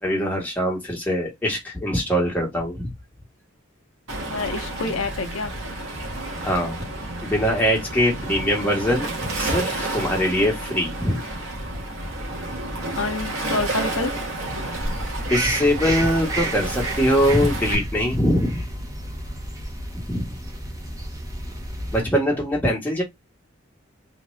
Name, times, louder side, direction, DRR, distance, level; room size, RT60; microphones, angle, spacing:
voice 1, 0.0-2.9 6.4-6.9 7.2-11.2 15.2-18.6 20.1-20.4 21.9-23.0, equal, 10° left, 1.5 m, -22 dB
Waves surf, 4.1-17.7, right 2 dB, 80° right, 1.5 m, -31 dB
voice 2, 4.3-5.5 13.0-14.1, left 3 dB, 80° left, 0.7 m, -27 dB
sound 1, 14.7-22.0, right 1 dB, 15° right, 1.2 m, -31 dB
3.7 x 2.8 x 3.2 m
head